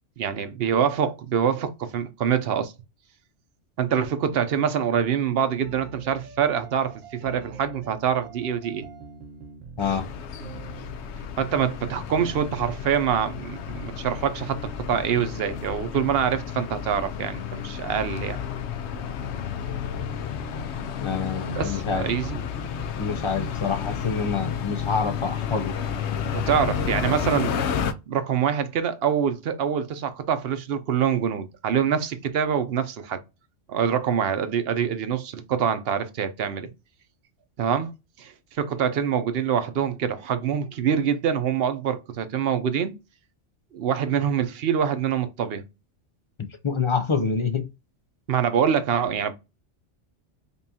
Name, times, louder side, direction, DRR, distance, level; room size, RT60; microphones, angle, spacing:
voice 1, 0.2-2.7 3.8-8.8 11.4-14.6 14.9-18.4 21.5-22.4 26.3-27.6 28.1-33.2 33.7-36.7 37.6-37.9 38.2-38.3 38.6-42.9 43.7-45.6 48.3-49.3, right 8 dB, 60° right, 0.8 m, -25 dB
sound 1, 5.6-11.4, right 5 dB, 80° right, 1.2 m, -44 dB
sound 2, 9.8-27.9, left 7 dB, 70° left, 0.8 m, -31 dB
voice 2, 21.0-22.1 23.0-25.8 46.6-47.7, left 5 dB, 55° left, 0.3 m, -26 dB
5.3 x 2.4 x 2.7 m
omnidirectional pair, 1.2 m